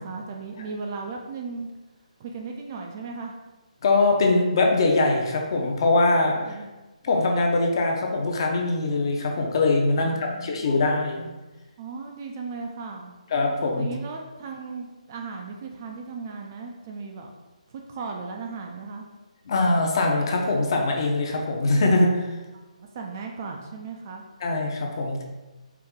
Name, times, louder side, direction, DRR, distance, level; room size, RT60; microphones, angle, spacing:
voice 1, 0.0-1.7 2.2-3.4 6.2-6.7 10.0-10.6 11.8-13.2 13.8-17.3 17.7-19.1 22.8-24.3, right 4 dB, 20° right, 1 dB, 0.3 m, -36 dB
voice 2, 3.8-6.4 7.0-11.3 13.3-13.9 19.5-22.2 24.4-25.2, left 2 dB, 35° left, 1 dB, 0.6 m, -22 dB
4.6 x 2.6 x 3.6 m, 1.1 s
hypercardioid pair, 170°, 4 cm